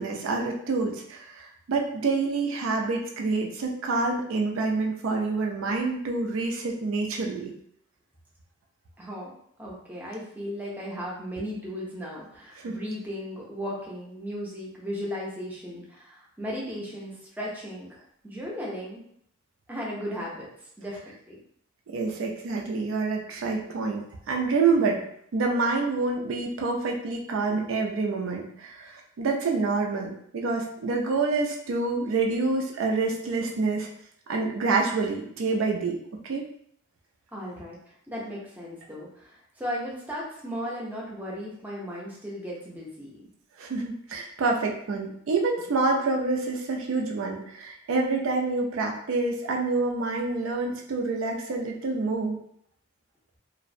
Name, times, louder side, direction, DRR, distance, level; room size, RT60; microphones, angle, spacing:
voice 1, 0.0-7.5 12.6-12.8 21.9-25.0 25.3-33.9 34.3-36.0 36.2-36.5 43.6-52.4, right 3 dB, 70° right, 1 dB, 0.4 m, -27 dB
voice 2, 9.0-9.3 9.6-19.0 19.7-21.4 37.3-43.2, equal, 10° right, -5 dB, 0.5 m, -36 dB
2.5 x 2.0 x 2.5 m, 0.68 s
head